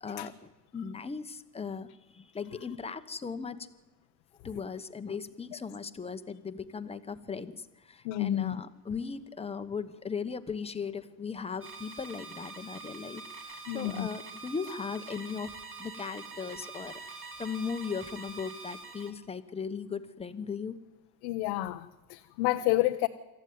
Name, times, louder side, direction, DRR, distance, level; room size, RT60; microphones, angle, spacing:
voice 1, 0.0-3.7 4.4-15.5 15.8-20.8, left 5 dB, 15° left, 10 dB, 1.1 m, -38 dB
voice 2, 8.0-8.5 13.7-14.1 21.2-23.1, left 16 dB, 80° left, 6 dB, 1.1 m, -29 dB
sound 1, 11.6-19.1, right 4 dB, 25° right, 2.5 m, -45 dB
26.0 x 14.0 x 9.4 m, 1.1 s
cardioid pair, 130°, 46 cm